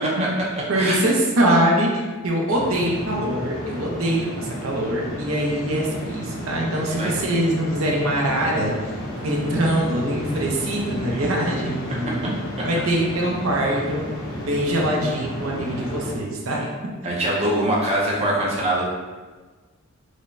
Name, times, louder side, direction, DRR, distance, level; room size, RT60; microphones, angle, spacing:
voice 1, 0.7-8.9 9.2-12.2 12.6-14.1 14.5-16.6, right 1 dB, 75° right, -2 dB, 0.7 m, -23 dB
sound 1, 2.5-16.1, equal, 80° left, 0.8 m, -32 dB
voice 2, 10.8-11.2 16.5-16.6 17.0-18.9, right 1 dB, 30° right, -5 dB, 0.5 m, -23 dB
4.9 x 2.1 x 2.6 m, 1.3 s
head